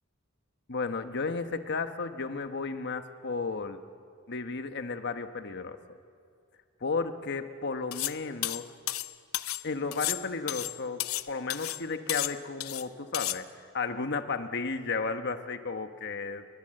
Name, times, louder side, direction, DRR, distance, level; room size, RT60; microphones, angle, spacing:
voice 1, 0.7-3.8 4.3-5.8 6.8-8.7 9.6-13.5 13.7-16.5, left 4 dB, 55° left, 8 dB, 1.2 m, -33 dB
sound 1, 7.9-8.2 8.4-9.6 9.9-11.3 11.5-11.8 12.1-12.8 13.1-13.4, left 15 dB, 80° left, 0.7 m, -32 dB
29.5 x 22.5 x 7.8 m, 2.3 s
head